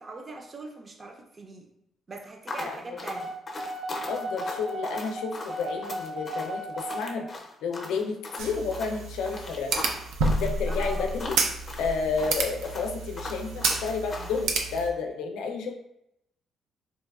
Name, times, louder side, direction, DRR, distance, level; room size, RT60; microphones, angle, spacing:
voice 1, 0.0-1.7 2.1-3.4 10.7-11.1 12.1-12.3, right 3 dB, 30° right, 2 dB, 0.5 m, -41 dB
sound 1, 2.5-14.4, left 2 dB, 30° left, 0.5 m, -39 dB
voice 2, 2.7-3.0 4.1-7.3 7.6-9.7 10.4-11.3 11.8-15.7, left 5 dB, 90° left, 3 dB, 0.4 m, -31 dB
sound 2, 3.2-7.1, right 1 dB, 55° right, 0.9 m, -35 dB
sound 3, 8.4-14.9, right 3 dB, 90° right, 0.4 m, -30 dB
3.9 x 2.2 x 2.3 m, 0.79 s
cardioid pair, 105°, 0 cm